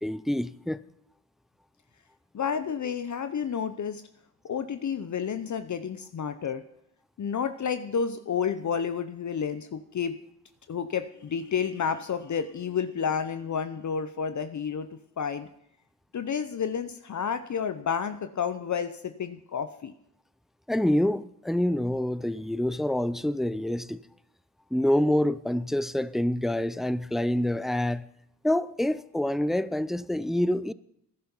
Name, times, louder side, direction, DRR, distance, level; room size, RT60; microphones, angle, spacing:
voice 1, 0.0-0.8 20.7-24.0 24.7-28.1 28.4-30.7, left 1 dB, ahead, 0.4 m, -26 dB
voice 2, 2.3-4.0 4.4-6.6 7.2-10.2 10.7-14.9 15.2-15.5 16.1-19.9, left 7 dB, 50° left, 0.8 m, -30 dB
14.0 x 10.5 x 5.6 m
cardioid pair, 70°, 39 cm